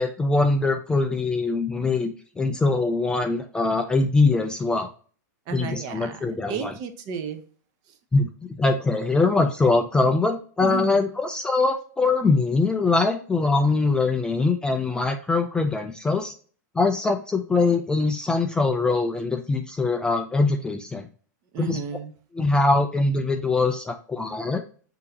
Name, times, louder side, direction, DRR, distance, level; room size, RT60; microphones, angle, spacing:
voice 1, 0.0-4.9 5.5-6.7 8.1-8.3 8.6-16.3 16.8-21.1 21.6-21.8 22.3-24.6, left 3 dB, 10° left, 5 dB, 0.3 m, -22 dB
voice 2, 5.5-7.4 10.6-11.0 21.5-22.1, right 6 dB, 40° right, 8 dB, 0.8 m, -32 dB
6.2 x 2.8 x 2.8 m, 0.42 s
hypercardioid pair, 140°, 10 cm